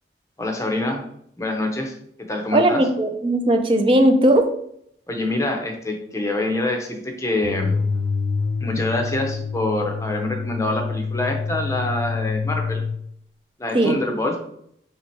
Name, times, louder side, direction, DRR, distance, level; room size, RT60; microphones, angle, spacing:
voice 1, 0.4-1.0 1.4-1.9 2.3-2.8 5.1-7.8 8.6-12.8 13.6-14.4, left 2 dB, 15° left, 2 dB, 0.6 m, -25 dB
voice 2, 2.5-4.5 13.7-14.0, right 1 dB, 30° right, 6 dB, 0.3 m, -17 dB
sound 1, 7.4-13.0, left 5 dB, 90° left, 0.4 m, -26 dB
3.4 x 2.8 x 4.4 m, 0.71 s
head